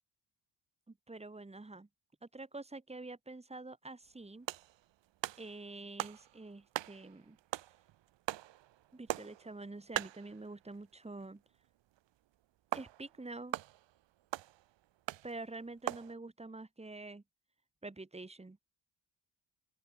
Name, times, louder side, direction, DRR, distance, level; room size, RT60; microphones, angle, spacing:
voice 1, 0.9-1.9 2.2-4.5 5.4-7.4 8.9-11.4 12.7-13.6 15.2-17.2 17.8-18.6, right 2 dB, 15° right, 6.6 m, -47 dB
sound 1, 4.3-11.2 11.5-11.7 12.0-12.1 12.7-16.1, right 14 dB, 90° right, 1.5 m, -42 dB
open air
wide cardioid pair, 155°, 43 cm